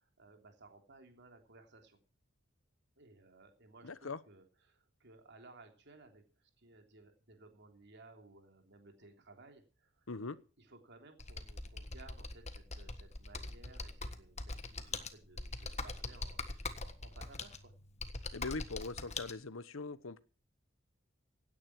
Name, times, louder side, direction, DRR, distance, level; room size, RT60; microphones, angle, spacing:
voice 1, 0.0-2.0 3.0-10.3 10.6-17.7, right 3 dB, 60° right, 5 dB, 3.4 m, -59 dB
voice 2, 3.8-4.2 10.1-10.4 18.3-20.2, left 3 dB, 75° left, 16 dB, 1.0 m, -41 dB
Computer keyboard, 11.2-19.3, left 3 dB, 35° left, 1.5 m, -43 dB
17.0 x 9.9 x 6.0 m, 0.36 s
head